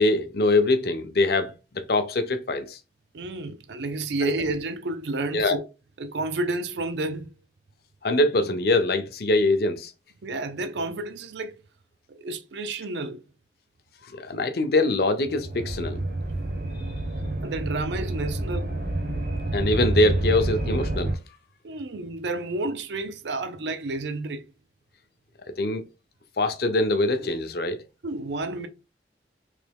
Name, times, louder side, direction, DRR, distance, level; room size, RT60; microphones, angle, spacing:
voice 1, 0.0-2.8 4.2-4.3 5.3-5.6 8.0-9.9 14.1-16.0 19.5-21.2 25.6-25.9 26.4-27.8, left 2 dB, 60° left, 0.6 m, -23 dB
voice 2, 3.1-5.6 6.0-7.3 10.2-11.5 12.1-13.2 17.4-18.7 21.6-24.4 28.0-28.7, right 2 dB, 80° right, 0.5 m, -30 dB
sound 1, 15.2-21.1, right 1 dB, 55° right, 0.8 m, -28 dB
3.3 x 2.9 x 3.4 m
head